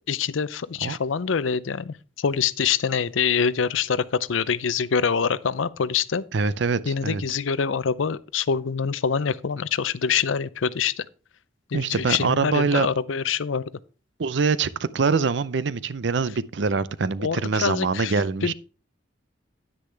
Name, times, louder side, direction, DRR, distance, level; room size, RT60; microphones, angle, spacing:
voice 1, 0.1-6.2 6.9-11.0 11.7-13.7 17.2-18.1 18.4-18.5, left 6 dB, 85° left, 0.5 m, -25 dB
voice 2, 6.3-7.2 11.7-12.9 14.2-18.5, right 4 dB, 65° right, 0.5 m, -24 dB
10.0 x 9.8 x 3.3 m
head